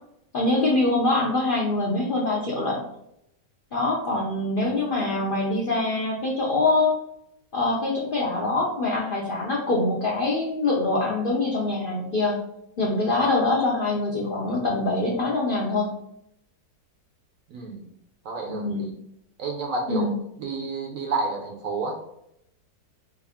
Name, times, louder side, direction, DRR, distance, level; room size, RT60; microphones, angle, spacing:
voice 1, 0.3-2.8 3.7-7.0 7.5-12.4 12.8-15.9 18.5-18.8 19.9-20.1, left 2 dB, 70° left, -3 dB, 0.5 m, -24 dB
voice 2, 17.5-17.8 18.2-18.9 19.4-20.1 20.4-22.0, right 3 dB, 65° right, 1 dB, 0.9 m, -30 dB
3.4 x 2.4 x 3.4 m, 0.77 s
omnidirectional pair, 1.8 m